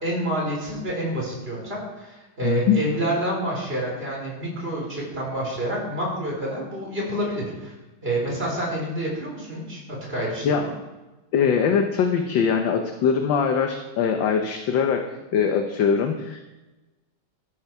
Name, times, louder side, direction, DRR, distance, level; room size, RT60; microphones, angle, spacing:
voice 1, 0.0-7.7 8.0-9.8 10.1-10.7, right 1 dB, 25° right, -3 dB, 4.5 m, -28 dB
voice 2, 2.4-2.8 10.4-10.6 11.3-16.4, left 6 dB, 65° left, 5 dB, 1.5 m, -22 dB
13.5 x 11.0 x 4.8 m, 1.1 s
omnidirectional pair, 2.4 m